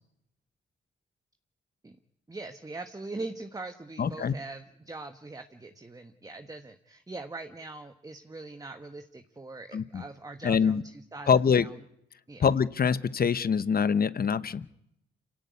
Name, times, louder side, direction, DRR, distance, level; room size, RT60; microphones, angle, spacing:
voice 1, 2.3-11.7 12.3-12.5, right 3 dB, 20° right, 7 dB, 1.4 m, -42 dB
voice 2, 4.0-4.3 9.7-10.0 10.4-10.8 11.3-11.7 12.4-14.7, left 6 dB, 50° left, 15 dB, 1.0 m, -24 dB
26.5 x 17.0 x 9.6 m, 0.78 s
cardioid pair, 75°, 19 cm